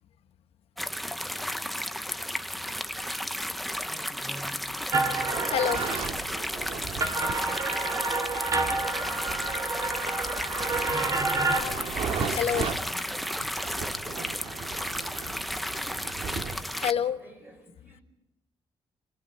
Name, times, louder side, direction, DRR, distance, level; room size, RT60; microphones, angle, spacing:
sound 1, 0.8-16.9, equal, ahead, 0.7 m, -33 dB
voice 1, 1.0-2.4 3.9-4.7 9.9-10.6 12.9-13.1 16.4-18.0, equal, 20° right, 4 dB, 5.2 m, -51 dB
sound 2, 4.9-6.3 6.8-11.6, right 3 dB, 35° right, 2.4 m, -29 dB
voice 2, 5.1-5.8 6.7-6.9 7.5-7.6 11.3-12.7 13.1-13.2 13.6-13.7 16.7-17.2, left 9 dB, 80° left, 10 dB, 1.1 m, -31 dB
sound 3, 5.1-16.6, right 5 dB, 75° right, 2.3 m, -37 dB
28.5 x 20.5 x 5.5 m, 0.90 s
cardioid pair, 120°, 10 cm